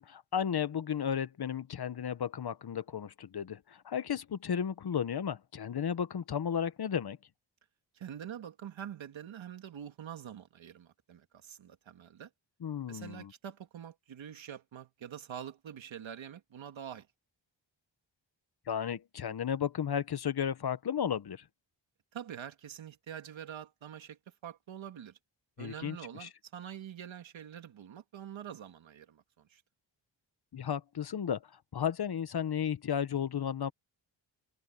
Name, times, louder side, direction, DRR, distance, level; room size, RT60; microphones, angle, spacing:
voice 1, 0.0-7.2 12.6-13.3 18.7-21.4 25.6-26.3 30.5-31.4 31.7-33.7, left 8 dB, 55° left, 1.1 m, -34 dB
voice 2, 8.0-12.3 12.9-17.1 22.1-25.1 25.6-29.6, right 9 dB, 90° right, 2.2 m, -45 dB
cardioid pair, 75°, 45 cm